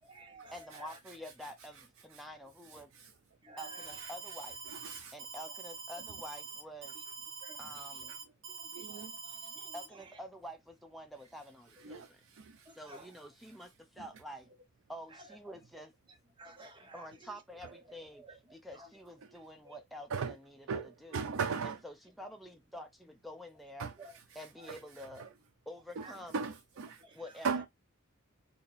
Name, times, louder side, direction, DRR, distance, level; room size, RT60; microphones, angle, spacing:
voice 1, 0.0-1.0 3.4-4.0 4.3-4.5 4.9-5.1 5.4-5.6 6.0-6.1 6.9-7.0 7.4-8.2 8.5-10.2 11.8-12.0 12.6-13.2 13.6-13.7 14.5-14.6 15.1-15.4 15.7-19.0 19.3-19.8 22.2-22.3 24.0-24.2 24.6-24.8 25.1-25.3 26.0-26.2 27.0-27.6, right 2 dB, 25° right, 1.0 m, -56 dB
voice 2, 0.5-2.9 3.6-4.6 5.1-6.9 7.6-8.1 9.7-12.2 12.8-14.5 14.9-15.9 16.9-18.2 18.5-21.2 21.6-23.9 24.4-25.2 25.7-26.4 27.1-27.7, equal, ahead, 0.5 m, -48 dB
voice 3, 2.7-3.1 4.0-4.1 4.7-5.1 8.1-8.2 8.7-9.1 11.8-12.7 14.0-14.1 20.1-20.4 20.7-21.8 23.8-23.9 24.7-24.8 26.0-26.1 26.3-27.0 27.4-27.7, right 5 dB, 85° right, 0.4 m, -37 dB
Alarm, 3.6-9.9, right 5 dB, 65° right, 0.8 m, -45 dB
2.8 x 2.8 x 4.0 m
head